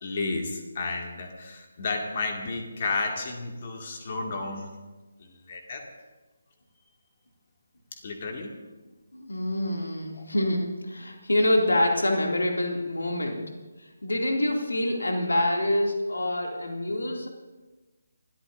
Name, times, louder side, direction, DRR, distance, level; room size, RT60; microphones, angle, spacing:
voice 1, 0.0-4.7 5.2-5.8 7.9-8.5 10.1-10.2, left 3 dB, 35° left, 2 dB, 2.2 m, -32 dB
voice 2, 9.1-13.4 14.0-17.3, left 1 dB, 65° left, 1 dB, 2.7 m, -26 dB
30.0 x 13.5 x 2.7 m, 1.2 s
figure-of-eight pair, 150°, 0 cm